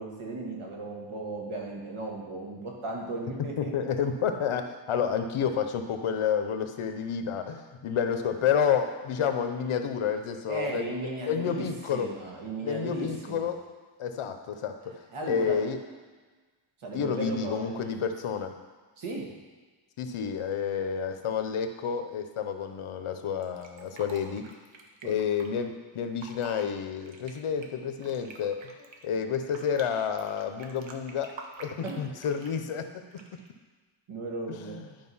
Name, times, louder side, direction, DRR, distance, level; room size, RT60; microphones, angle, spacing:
voice 1, 0.0-3.7 10.5-11.6 11.9-13.5 15.1-15.6 16.8-17.8 19.0-19.3 25.0-25.2 31.8-32.0 34.1-34.9, right 2 dB, 85° right, -1 dB, 2.0 m, -36 dB
voice 2, 3.6-12.1 12.6-13.6 14.0-14.9 15.3-15.8 16.9-18.5 20.0-24.5 25.0-28.7 29.0-33.0 34.6-34.8, left 7 dB, 90° left, 7 dB, 0.9 m, -30 dB
Fill (with liquid), 23.4-25.5 26.1-26.6 27.0-29.8 30.2-32.6 33.1-33.5, right 4 dB, 70° right, 1.1 m, -48 dB
10.5 x 5.2 x 5.5 m, 1.4 s
wide cardioid pair, 145°, 48 cm